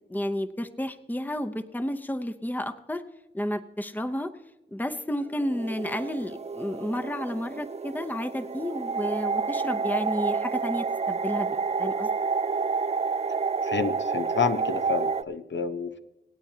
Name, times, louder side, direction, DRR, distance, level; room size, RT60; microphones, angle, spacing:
voice 1, 0.1-3.0 3.3-4.3 4.7-12.1, equal, 10° left, 10 dB, 0.7 m, -31 dB
sound 1, 5.2-15.2, right 5 dB, 35° right, 0.4 m, -29 dB
voice 2, 13.6-16.0, left 5 dB, 70° left, 8 dB, 0.8 m, -29 dB
26.0 x 8.8 x 2.8 m, 1.0 s
wide cardioid pair, 50°, 20 cm